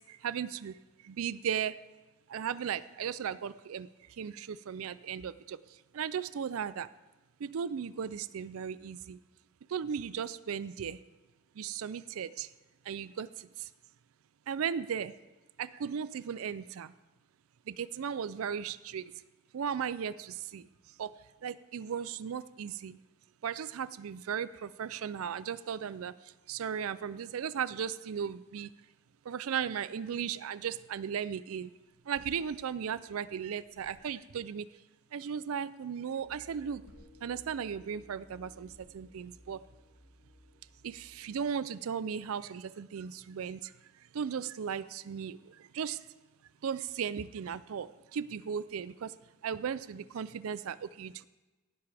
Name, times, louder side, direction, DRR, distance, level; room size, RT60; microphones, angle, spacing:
voice 1, 0.2-0.7 1.1-1.7 2.3-3.9 4.2-5.6 5.9-6.9 7.4-9.2 9.7-11.0 11.6-12.5 12.9-13.3 14.5-15.1 15.6-16.9 17.7-19.0 19.5-20.6 21.0-21.1 21.4-23.0 23.4-26.1 26.5-28.7 29.3-31.7 32.1-34.6 35.1-36.8 37.2-38.7 38.9-39.6 40.8-43.6 44.1-45.4 45.7-46.0 46.6-49.1 49.4-51.2, right 7 dB, 75° right, 16 dB, 0.4 m, -36 dB
sound 1, 31.9-33.3 33.6-34.4 36.6-37.8 38.5-39.3, equal, 70° left, 2.4 m, -61 dB
sound 2, 36.2-41.5, left 1 dB, 55° left, 4.6 m, -58 dB
17.5 x 11.5 x 3.4 m, 1.2 s
head